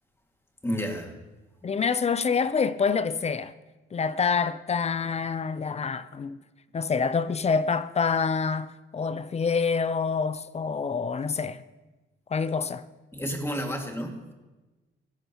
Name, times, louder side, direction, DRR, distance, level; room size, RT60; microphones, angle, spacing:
voice 1, 0.6-1.1 13.1-14.3, equal, 10° left, 2.2 m, -31 dB
voice 2, 1.6-3.5 3.9-6.4 6.7-11.6 12.3-12.8, left 5 dB, 35° left, 0.6 m, -26 dB
16.5 x 14.5 x 3.0 m
cardioid pair, 90°, 20 cm